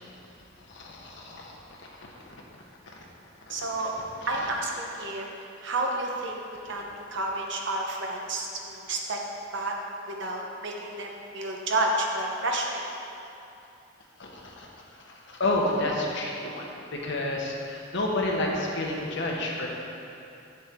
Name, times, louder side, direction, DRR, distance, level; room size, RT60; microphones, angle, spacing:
voice 1, 0.7-1.5 2.0-2.1 2.9-3.0 14.2-14.7 15.3-19.7, left 2 dB, 65° left, -1 dB, 1.1 m, -30 dB
voice 2, 3.5-3.9 4.3-5.3 5.6-6.4 6.7-9.2 9.5-9.7 10.1-12.8, right 2 dB, 65° right, 0 dB, 1.0 m, -30 dB
8.9 x 7.1 x 3.7 m, 2.8 s
head